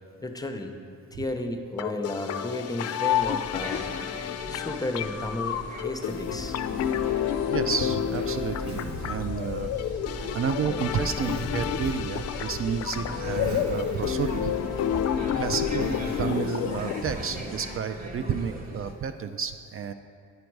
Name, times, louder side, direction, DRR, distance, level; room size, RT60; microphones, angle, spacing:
voice 1, 0.2-0.7 1.1-3.9 4.5-5.6 5.8-6.6 15.6-15.7, left 1 dB, 10° left, 5 dB, 0.7 m, -33 dB
sound 1, 1.8-17.8, left 10 dB, 55° left, 0.4 m, -30 dB
sound 2, 3.1-18.9, right 1 dB, 30° right, 1.2 m, -40 dB
Zipper (clothing), 6.2-16.2, equal, 80° right, 1.3 m, -39 dB
voice 2, 7.5-10.0 10.3-14.5 15.4-19.9, right 7 dB, 45° right, 8 dB, 0.4 m, -31 dB
9.3 x 5.1 x 4.6 m, 2.3 s
cardioid pair, 90°, 30 cm